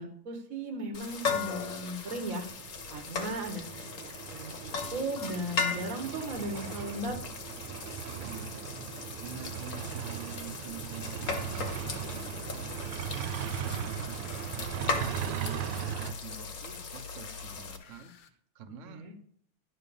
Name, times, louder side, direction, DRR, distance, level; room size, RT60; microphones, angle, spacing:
voice 1, 0.0-2.5 2.9-7.2 18.9-19.1, right 1 dB, 50° right, 3 dB, 1.2 m, -37 dB
sound 1, 0.9-17.8, left 5 dB, 50° left, 1.1 m, -38 dB
sound 2, 1.7-16.1, right 9 dB, 85° right, 1.6 m, -39 dB
voice 2, 8.1-8.5 9.2-12.7 13.4-19.2, right 6 dB, 70° right, 7 dB, 0.7 m, -47 dB
sound 3, 11.1-18.3, left 5 dB, 65° left, 1.3 m, -48 dB
10.5 x 3.9 x 6.9 m, 0.64 s
omnidirectional pair, 2.4 m